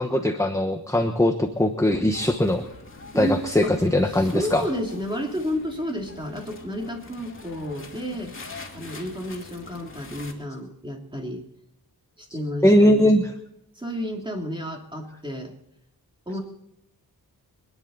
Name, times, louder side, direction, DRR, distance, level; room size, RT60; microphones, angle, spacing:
voice 1, 0.0-2.6 3.2-4.7 12.6-13.3, left 1 dB, 10° left, 5 dB, 1.1 m, -20 dB
sound 1, 2.1-10.3, left 3 dB, 35° left, 2.6 m, -44 dB
voice 2, 3.1-3.8 4.1-8.3 8.7-11.4 12.2-13.2 13.7-15.5 16.3-16.4, equal, 15° right, 1 dB, 2.8 m, -31 dB
25.0 x 10.5 x 4.0 m, 0.78 s
wide cardioid pair, 100°, 37 cm